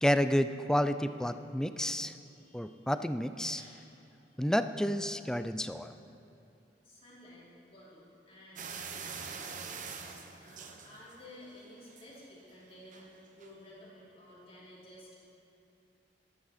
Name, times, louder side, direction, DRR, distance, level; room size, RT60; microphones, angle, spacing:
voice 1, 0.0-2.1 2.5-3.6 4.4-5.9, equal, 5° left, 11 dB, 0.3 m, -30 dB
voice 2, 2.2-2.8 3.6-4.3 6.8-15.1, left 1 dB, 35° left, -7 dB, 3.1 m, -54 dB
sound 1, 8.6-11.4 11.8-12.2 12.9-13.1 13.4-13.5, right 5 dB, 50° right, 0.9 m, -44 dB
13.5 x 11.5 x 4.2 m, 2.8 s
head